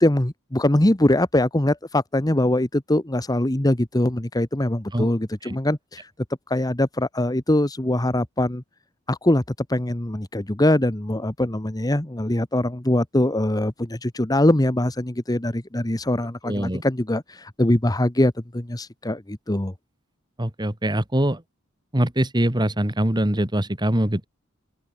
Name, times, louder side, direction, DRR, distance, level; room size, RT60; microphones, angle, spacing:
voice 1, 0.0-6.1 6.5-8.6 9.1-9.4 9.7-19.7, left 1 dB, 20° left, 1.2 m, -22 dB
voice 2, 16.5-16.8 20.4-21.4 21.9-24.3, right 1 dB, 20° right, 2.1 m, -23 dB
head